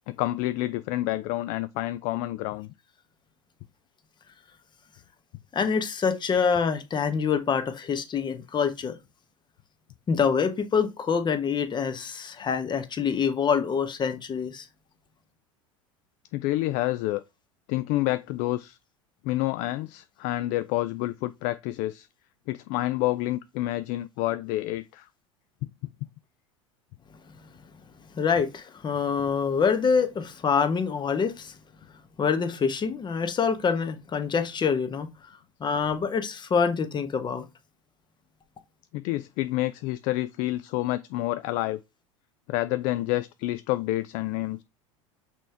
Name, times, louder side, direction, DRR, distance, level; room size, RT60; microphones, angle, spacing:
voice 1, 0.1-2.7 16.3-17.2 17.7-18.8 19.2-22.1 22.5-25.1 38.9-41.8 42.5-44.6, left 17 dB, 50° left, 0.4 m, -28 dB
voice 2, 5.5-8.9 10.1-14.7 28.1-31.5 32.2-35.1 35.6-37.4, left 6 dB, 25° left, 1.2 m, -26 dB
6.0 x 4.6 x 3.4 m
hypercardioid pair, 80°, 17 cm